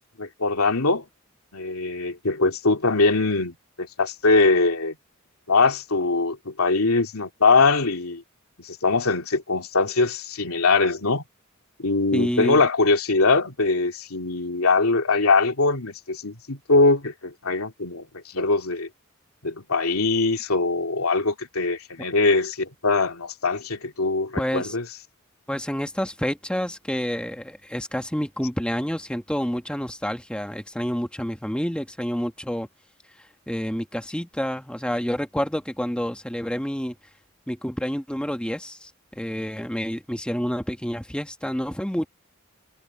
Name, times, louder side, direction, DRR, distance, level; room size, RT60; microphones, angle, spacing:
voice 1, 0.2-1.0 1.5-5.0 5.5-8.2 8.6-11.2 11.8-18.9 19.4-24.8, left 3 dB, 90° left, 2.7 m, -22 dB
voice 2, 12.1-12.6 24.4-24.8 25.5-32.7 33.5-37.0 37.5-42.1, equal, 5° left, 1.4 m, -28 dB
head